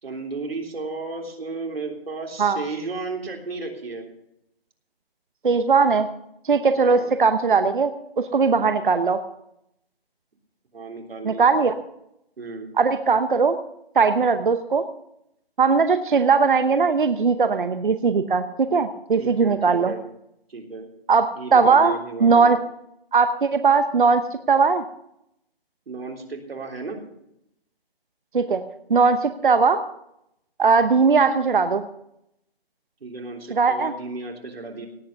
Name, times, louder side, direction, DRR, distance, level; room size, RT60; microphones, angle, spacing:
voice 1, 0.0-4.1 6.7-7.1 10.7-11.5 12.4-12.7 19.1-20.0 20.5-20.9 21.4-22.6 25.9-27.0 33.0-34.9, right 3 dB, 70° right, 2 dB, 3.5 m, -34 dB
voice 2, 5.4-6.1 6.4-7.9 8.2-9.2 11.2-11.7 12.8-13.6 14.0-14.8 15.6-18.4 18.7-19.9 21.1-22.0 22.2-22.6 23.1-24.8 28.3-28.6 28.9-29.8 30.6-31.9 33.5-33.9, right 5 dB, 55° right, 9 dB, 0.9 m, -19 dB
17.5 x 8.5 x 6.6 m, 0.79 s
hypercardioid pair, 175°, 30 cm